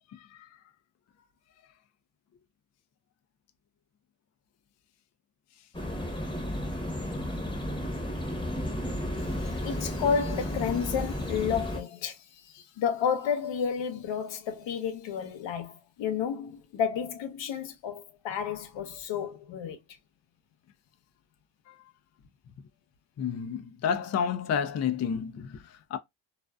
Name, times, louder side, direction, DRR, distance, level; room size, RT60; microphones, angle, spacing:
sound 1, 5.7-11.8, equal, 10° left, 0.9 m, -33 dB
voice 1, 9.4-12.2 12.5-19.8, left 7 dB, 75° left, 0.8 m, -31 dB
voice 2, 23.2-26.0, left 7 dB, 40° left, 0.4 m, -30 dB
2.4 x 2.3 x 2.2 m
cardioid pair, 75°, 45 cm